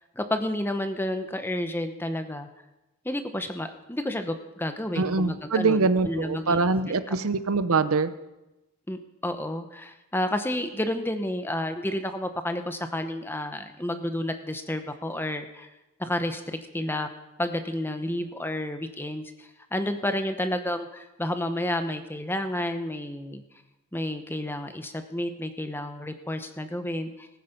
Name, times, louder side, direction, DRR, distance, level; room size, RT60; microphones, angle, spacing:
voice 1, 0.2-2.5 3.0-6.7 7.1-7.2 8.9-15.7 16.0-17.1 17.4-23.4 23.9-27.3, left 1 dB, 10° left, 8 dB, 0.8 m, -31 dB
voice 2, 5.0-8.1, right 4 dB, 75° right, 13 dB, 0.7 m, -24 dB
18.5 x 9.3 x 5.3 m, 0.98 s
head